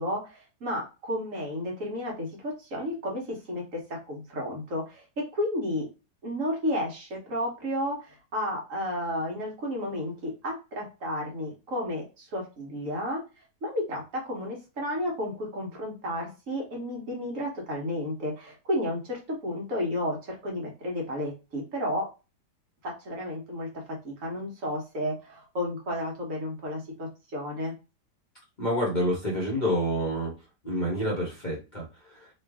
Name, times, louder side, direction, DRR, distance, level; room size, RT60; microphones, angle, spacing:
voice 1, 0.0-5.9 6.2-13.2 13.6-22.1 22.8-23.7 24.0-27.7, left 1 dB, 55° right, -1 dB, 1.2 m, -32 dB
voice 2, 28.6-30.3 30.6-32.3, equal, 35° left, -4 dB, 0.9 m, -28 dB
3.1 x 2.4 x 3.3 m, 0.30 s
omnidirectional pair, 1.8 m